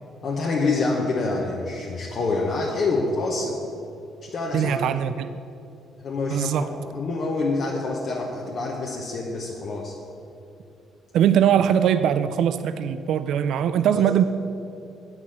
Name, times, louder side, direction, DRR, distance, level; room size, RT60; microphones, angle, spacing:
voice 1, 0.2-3.6 4.3-4.7 6.0-9.9, left 3 dB, 45° left, -2 dB, 1.0 m, -26 dB
voice 2, 4.5-5.4 6.3-6.7 11.1-14.2, right 9 dB, 65° right, 12 dB, 0.3 m, -21 dB
8.4 x 6.0 x 7.5 m, 2.6 s
cardioid pair, 145°, 0 cm